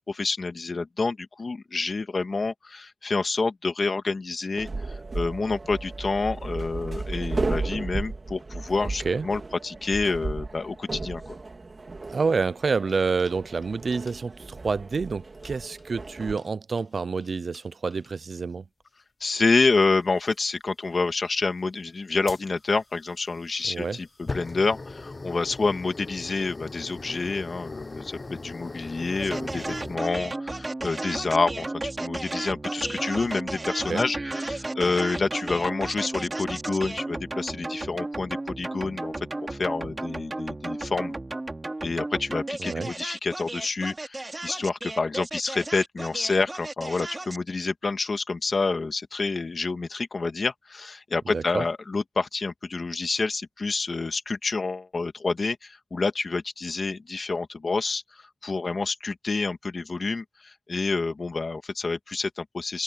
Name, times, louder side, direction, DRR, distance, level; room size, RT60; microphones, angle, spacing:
voice 1, 0.0-4.7 5.1-11.4 19.2-39.1 39.5-41.1 41.8-58.0 58.4-62.8, left 3 dB, 60° left, 2.2 m, -28 dB
sound 1, 4.6-16.4, right 3 dB, 50° right, 3.8 m, -34 dB
sound 2, 12.0-13.7 13.9-14.2 15.3-15.8 16.4-16.5 16.8-17.3 17.5-17.6 17.9-18.3 19.4-19.5 20.3-20.4 22.3-30.0, left 3 dB, 40° left, 1.0 m, -40 dB
voice 2, 12.1-18.6 23.7-24.0 33.9-34.0 42.6-42.9 51.3-51.6, right 4 dB, 70° right, 0.5 m, -28 dB
sound 3, 29.2-47.5, right 2 dB, 30° right, 3.0 m, -34 dB
wide cardioid pair, 90°, 0 cm